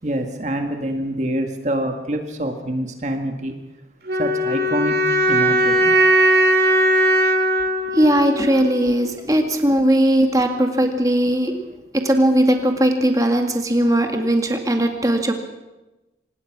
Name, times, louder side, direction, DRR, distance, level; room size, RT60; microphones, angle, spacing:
voice 1, 0.0-3.5 4.2-4.9 5.3-5.9, right 1 dB, 40° right, 4 dB, 1.8 m, -25 dB
sound 1, 4.1-9.1, right 1 dB, 60° right, 2.8 m, -18 dB
voice 2, 7.9-11.5 12.0-15.3, right 1 dB, 20° right, 4 dB, 2.1 m, -18 dB
26.0 x 19.0 x 6.1 m, 1.1 s
head